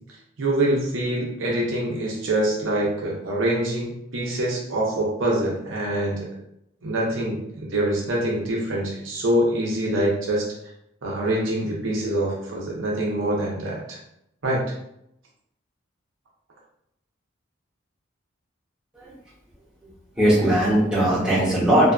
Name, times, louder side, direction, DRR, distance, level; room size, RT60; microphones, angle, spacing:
voice 1, 0.4-6.3 6.8-10.5 11.0-14.0 14.4-14.6, right 1 dB, 75° right, -3 dB, 0.6 m, -25 dB
voice 2, 20.2-21.9, right 1 dB, 5° right, -8 dB, 0.7 m, -19 dB
2.5 x 2.4 x 2.3 m, 0.77 s
head